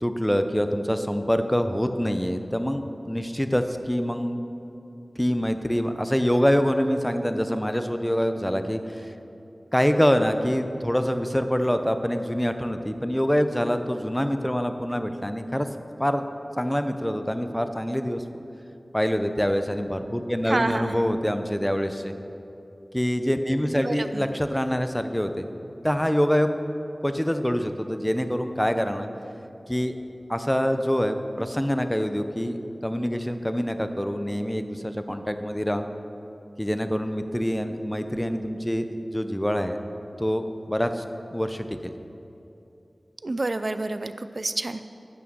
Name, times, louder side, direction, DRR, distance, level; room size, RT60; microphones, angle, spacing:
voice 1, 0.0-4.4 5.2-9.1 9.7-15.7 16.0-16.2 16.6-18.2 18.9-22.1 22.9-25.5 25.8-26.5 27.0-29.1 29.7-30.0 30.3-35.9 36.6-39.8 40.2-41.0 41.3-41.9, equal, 10° left, 8 dB, 0.6 m, -25 dB
voice 2, 20.5-21.2 23.8-24.3 43.2-44.9, right 2 dB, 60° right, 11 dB, 0.4 m, -28 dB
9.2 x 6.3 x 6.1 m, 2.8 s
wide cardioid pair, 50°, 0 cm